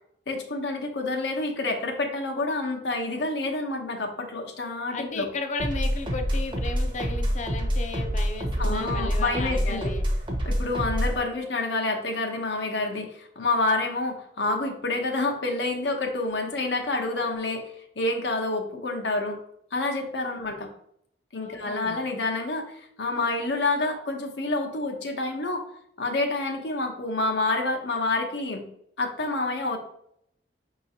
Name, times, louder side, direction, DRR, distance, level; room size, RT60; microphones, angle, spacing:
voice 1, 0.3-5.3 8.6-9.9 10.4-17.7 18.0-19.4 19.7-20.7 21.3-25.6 26.0-28.7 29.0-29.8, left 2 dB, 80° left, 2 dB, 0.8 m, -28 dB
voice 2, 4.9-10.1 21.4-22.0, left 3 dB, 40° left, 5 dB, 0.5 m, -35 dB
sound 1, 5.6-11.2, equal, 30° right, 0.7 m, -27 dB
5.7 x 3.0 x 2.7 m, 0.71 s
head